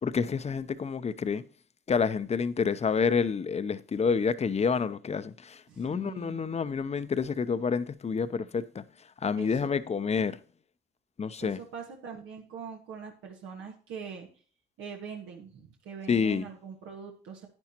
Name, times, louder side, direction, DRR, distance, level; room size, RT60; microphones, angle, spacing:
voice 1, 0.0-1.4 1.9-8.8 9.2-10.4 11.2-11.6 16.1-16.5, left 5 dB, 35° left, 0.7 m, -28 dB
voice 2, 5.7-6.6 9.4-9.7 11.4-14.3 14.8-17.5, right 6 dB, 90° right, 1.6 m, -42 dB
10.5 x 9.8 x 3.0 m
cardioid pair, 90°, 20 cm